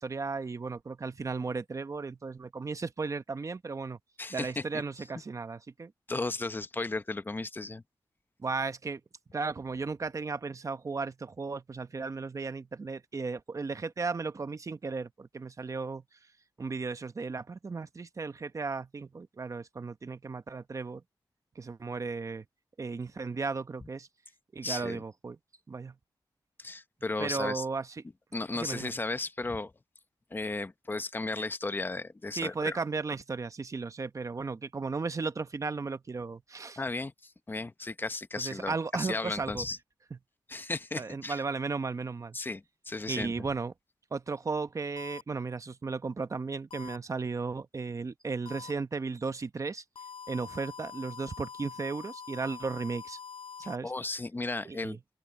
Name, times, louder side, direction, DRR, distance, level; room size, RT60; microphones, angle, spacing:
voice 1, 0.0-4.0 4.3-5.9 8.4-9.0 9.3-16.0 16.6-21.0 21.6-22.4 22.8-24.1 24.5-25.4 25.7-25.9 27.2-28.0 28.5-28.9 32.3-36.8 38.4-39.6 40.1-40.2 41.0-42.4 43.1-43.7 44.1-49.8 50.3-53.2 53.6-53.9 54.6-55.0, right 4 dB, 35° right, 0.9 m, -35 dB
voice 2, 4.2-4.6 6.1-7.8 24.6-25.0 26.6-27.6 28.3-29.7 30.3-32.8 36.8-39.8 40.5-41.4 42.3-43.5 53.8-55.0, left 3 dB, 25° left, 0.8 m, -35 dB
sound 1, 45.0-45.2 46.7-47.0 48.5-48.7 50.0-53.8, left 7 dB, 80° left, 4.0 m, -45 dB
open air
wide cardioid pair, 115°, 9 cm